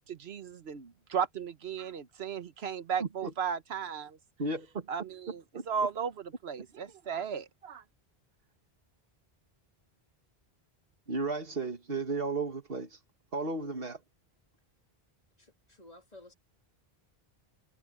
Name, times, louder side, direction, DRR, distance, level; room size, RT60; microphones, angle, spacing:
voice 1, 0.0-4.2 4.9-7.8, right 7 dB, 85° right, 1.3 m, -35 dB
voice 2, 3.0-3.3 4.4-4.9 5.5-5.6 11.1-13.0 13.3-14.0, right 3 dB, 65° right, 2.2 m, -34 dB
voice 3, 15.4-16.3, left 2 dB, 40° left, 3.1 m, -54 dB
omnidirectional pair, 1.0 m